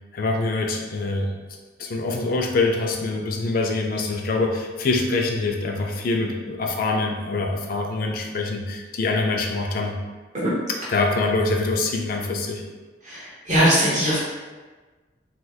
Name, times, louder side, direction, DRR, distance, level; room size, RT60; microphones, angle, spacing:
voice 1, 0.1-1.3 1.8-10.0 10.9-12.6, left 3 dB, 55° left, 2 dB, 0.4 m, -24 dB
voice 2, 13.0-14.2, equal, 45° right, -8 dB, 0.9 m, -20 dB
3.2 x 2.9 x 2.3 m, 1.3 s
head